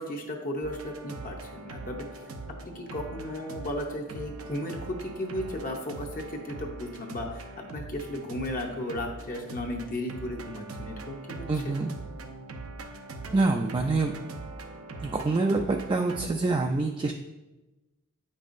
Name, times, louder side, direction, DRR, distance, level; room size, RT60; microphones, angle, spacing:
voice 1, 0.0-2.1 2.6-7.5 7.7-11.7, left 1 dB, 40° left, 1 dB, 0.7 m, -35 dB
sound 1, 0.6-16.3, right 2 dB, 85° right, 0.7 m, -42 dB
voice 2, 11.5-11.9 13.3-14.1 15.0-17.1, right 3 dB, 25° right, 3 dB, 0.3 m, -26 dB
8.5 x 5.4 x 2.5 m, 1.1 s
head